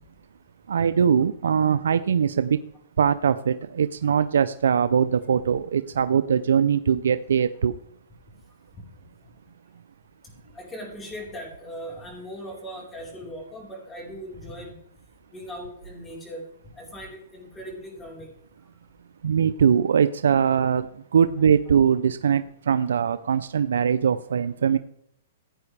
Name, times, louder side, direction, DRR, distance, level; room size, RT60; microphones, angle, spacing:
voice 1, 0.7-2.6 3.0-7.8 19.2-20.9 21.1-24.8, right 7 dB, 85° right, 13 dB, 0.4 m, -21 dB
voice 2, 10.5-14.8 15.3-16.4 16.7-18.3, equal, 15° left, -1 dB, 4.2 m, -39 dB
15.5 x 9.5 x 3.3 m, 0.75 s
hypercardioid pair, 140°, 0 cm